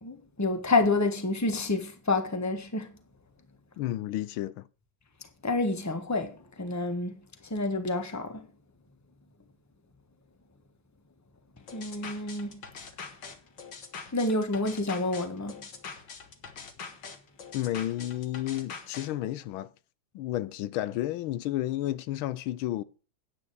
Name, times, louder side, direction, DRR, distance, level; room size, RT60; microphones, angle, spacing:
voice 1, 0.0-2.9 5.4-7.2 7.5-8.5 11.7-12.6 14.1-15.6, left 2 dB, 10° left, 1.2 m, -28 dB
voice 2, 3.8-4.7 17.5-19.7 20.1-22.8, left 14 dB, 90° left, 1.5 m, -31 dB
sound 1, 11.7-19.1, left 5 dB, 65° left, 2.3 m, -43 dB
9.6 x 9.2 x 4.7 m
omnidirectional pair, 2.2 m